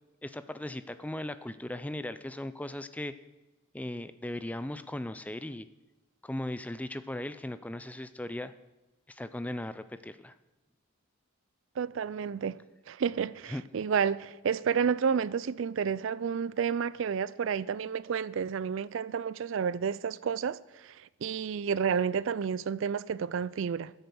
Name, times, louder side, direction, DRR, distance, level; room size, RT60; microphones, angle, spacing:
voice 1, 0.2-3.1 3.7-5.7 6.2-8.5 9.1-10.3 13.5-13.6, left 1 dB, 5° left, 0.4 m, -37 dB
voice 2, 11.8-12.6 12.9-23.9, right 6 dB, 60° right, 0.4 m, -30 dB
13.0 x 8.0 x 7.0 m
head